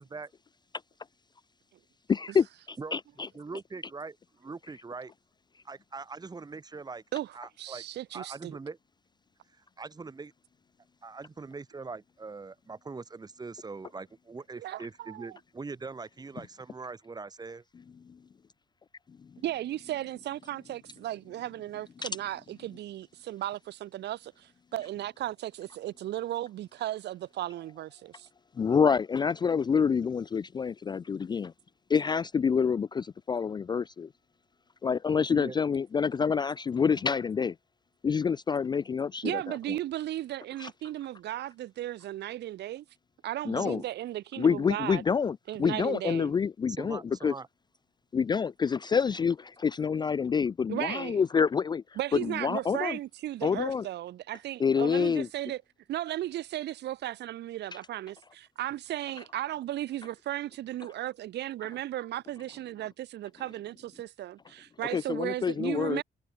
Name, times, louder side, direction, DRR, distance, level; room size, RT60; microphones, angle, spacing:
voice 1, 2.1-2.5 2.9-3.0 22.0-22.1 28.6-31.5 31.9-34.1 34.8-37.5 38.0-39.6 40.6-40.7 43.5-43.8 44.4-47.3 48.1-51.8 52.1-53.0 53.4-53.9 54.6-55.3 64.9-66.0, left 6 dB, 25° left, 0.3 m, -27 dB
voice 2, 3.3-5.1 5.7-7.0 7.3-7.8 8.1-8.8 9.5-10.3 11.0-17.6 35.3-35.6 43.6-43.8 46.7-47.5, right 4 dB, 25° right, 3.4 m, -42 dB
voice 3, 7.1-8.6 14.6-15.3 19.4-28.3 39.2-42.8 43.2-45.0 45.5-46.3 50.7-51.2 52.0-55.6 55.9-66.0, right 13 dB, 85° right, 1.3 m, -36 dB
cardioid pair, 140°, 17 cm